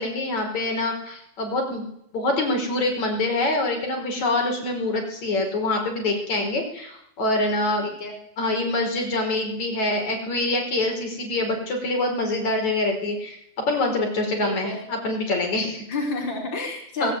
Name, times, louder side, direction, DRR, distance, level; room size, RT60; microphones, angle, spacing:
voice 1, 0.0-1.9 2.1-7.9 8.4-15.8 17.0-17.1, left 2 dB, 70° left, 2 dB, 6.5 m, -25 dB
voice 2, 7.8-8.1 14.4-14.8 15.9-17.1, left 3 dB, 35° left, 0 dB, 5.9 m, -30 dB
21.0 x 19.0 x 9.4 m, 0.73 s
omnidirectional pair, 3.4 m